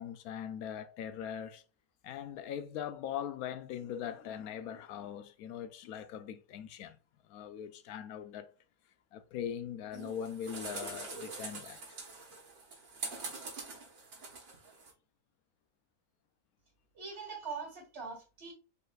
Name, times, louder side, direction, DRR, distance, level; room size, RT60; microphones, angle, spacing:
voice 1, 0.0-1.6 2.0-7.0 7.2-8.5 9.1-11.8, left 9 dB, 80° left, 1.1 m, -41 dB
sound 1, 9.9-14.9, right 3 dB, 65° right, 1.8 m, -44 dB
voice 2, 16.9-18.5, right 5 dB, 45° right, 2.4 m, -42 dB
5.1 x 4.0 x 2.4 m
omnidirectional pair, 1.5 m